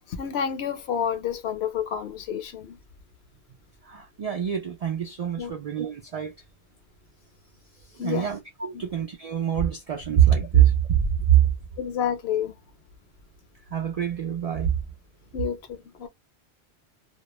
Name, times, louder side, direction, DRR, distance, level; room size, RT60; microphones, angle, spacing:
voice 1, 0.1-2.8 5.4-5.5 8.0-8.3 8.7-8.8 11.8-12.5 15.3-16.1, left 8 dB, 70° left, 0.8 m, -29 dB
voice 2, 3.9-6.3 7.9-11.0 11.3-11.4 13.7-14.7, right 10 dB, 80° right, 0.3 m, -24 dB
2.2 x 2.0 x 2.9 m
omnidirectional pair, 1.2 m